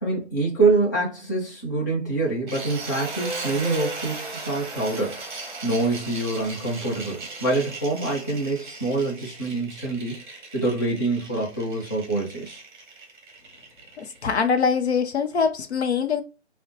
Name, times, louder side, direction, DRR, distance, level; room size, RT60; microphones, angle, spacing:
voice 1, 0.0-5.2 5.6-10.2 10.5-12.6, right 2 dB, 15° left, 0.7 m, -25 dB
sound 1, 2.5-14.4, right 3 dB, 45° right, 1.1 m, -37 dB
voice 2, 14.0-16.2, left 6 dB, 70° left, 0.7 m, -23 dB
3.9 x 2.1 x 2.8 m
hypercardioid pair, 165°, 34 cm